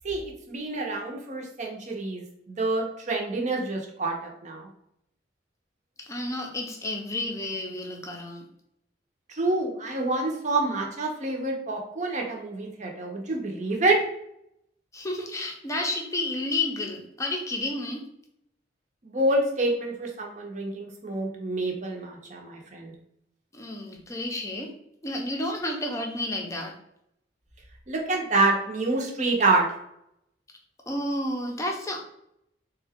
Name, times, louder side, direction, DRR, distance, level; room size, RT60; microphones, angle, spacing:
voice 1, 0.0-4.7 9.3-14.0 19.0-22.9 27.9-29.7, right 2 dB, 40° right, 1 dB, 0.7 m, -27 dB
voice 2, 6.1-8.4 14.9-18.0 23.5-24.7 25.0-26.7 30.9-32.0, left 1 dB, 15° left, 1 dB, 0.6 m, -31 dB
3.7 x 2.3 x 3.5 m, 0.77 s
head